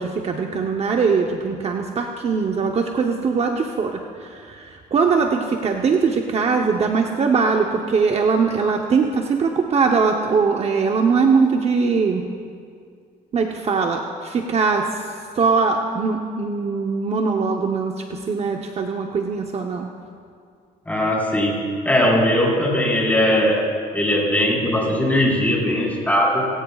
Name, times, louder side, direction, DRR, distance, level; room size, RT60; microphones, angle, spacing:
voice 1, 0.0-12.3 13.3-19.9, right 5 dB, 40° right, 3 dB, 0.9 m, -21 dB
voice 2, 20.9-26.5, left 1 dB, 10° left, -3 dB, 4.4 m, -20 dB
21.0 x 17.5 x 2.4 m, 2.2 s
cardioid pair, 110°, 17 cm